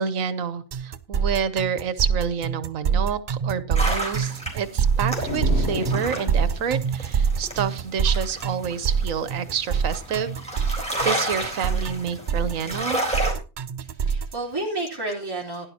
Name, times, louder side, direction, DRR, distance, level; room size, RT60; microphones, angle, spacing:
voice 1, 0.0-13.0, right 7 dB, 85° right, 1.3 m, -28 dB
sound 1, 0.7-14.3, right 6 dB, 50° right, 0.6 m, -25 dB
sound 2, 3.7-13.3, right 1 dB, 5° left, 3.7 m, -31 dB
sound 3, 5.2-6.7, left 5 dB, 55° left, 1.0 m, -31 dB
voice 2, 13.8-15.6, right 2 dB, 15° right, 3.1 m, -31 dB
16.5 x 10.5 x 2.8 m
omnidirectional pair, 1.4 m